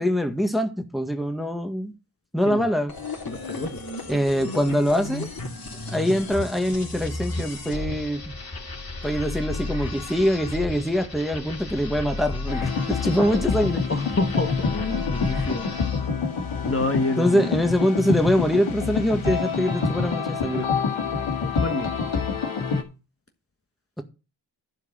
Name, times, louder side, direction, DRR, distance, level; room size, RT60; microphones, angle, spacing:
voice 1, 0.0-1.9 2.3-2.9 4.1-5.3 5.9-8.3 9.0-13.8 17.2-20.7, equal, ahead, 1.7 m, -24 dB
sound 1, 2.9-16.1, left 2 dB, 50° left, 3.2 m, -34 dB
voice 2, 3.3-3.8 13.2-13.3 13.9-15.6 16.6-17.4 21.4-21.9, left 2 dB, 30° left, 1.3 m, -28 dB
sound 2, 12.5-22.8, left 5 dB, 80° left, 2.4 m, -27 dB
11.0 x 4.8 x 7.6 m
cardioid pair, 55°, 47 cm